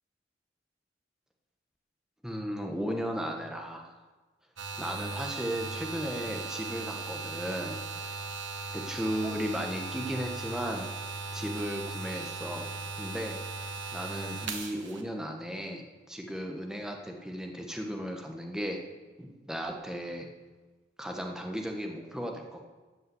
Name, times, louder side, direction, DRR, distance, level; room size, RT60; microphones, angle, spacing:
voice 1, 2.2-3.9 4.8-8.1 8.7-10.9 11.3-12.7 13.0-13.6 13.9-18.8 19.2-20.3 21.0-22.6, equal, 5° right, 2 dB, 1.1 m, -35 dB
sound 1, 4.6-15.0, right 4 dB, 85° right, 1.2 m, -38 dB
12.5 x 5.5 x 8.0 m, 1.3 s
head